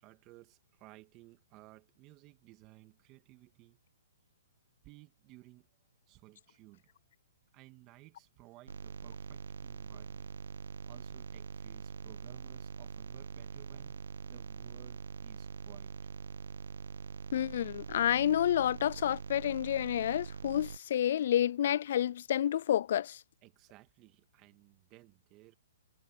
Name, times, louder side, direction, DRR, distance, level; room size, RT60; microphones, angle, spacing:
voice 1, 0.0-3.8 4.8-5.7 6.1-6.9 7.5-10.3 10.8-15.9 23.4-25.5, right 19 dB, 25° right, 2.1 m, -58 dB
sound 1, 8.7-20.8, right 6 dB, 90° right, 1.1 m, -44 dB
voice 2, 17.3-23.2, left 10 dB, 55° left, 0.3 m, -29 dB
hypercardioid pair, 155°, 0 cm